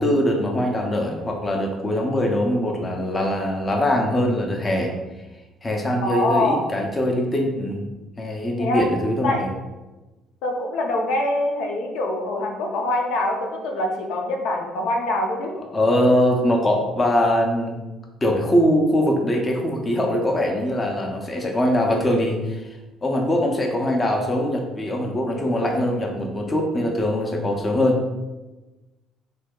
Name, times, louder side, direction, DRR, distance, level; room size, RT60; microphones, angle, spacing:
voice 1, 0.0-4.9 5.6-7.9 8.2-9.5 15.7-17.8 18.2-28.1, left 1 dB, 20° left, 1 dB, 0.5 m, -22 dB
voice 2, 6.0-6.6 8.6-8.8 9.2-9.5 10.4-15.5, left 1 dB, 85° left, 1 dB, 0.6 m, -24 dB
3.2 x 2.7 x 3.7 m, 1.1 s
cardioid pair, 130°, 0 cm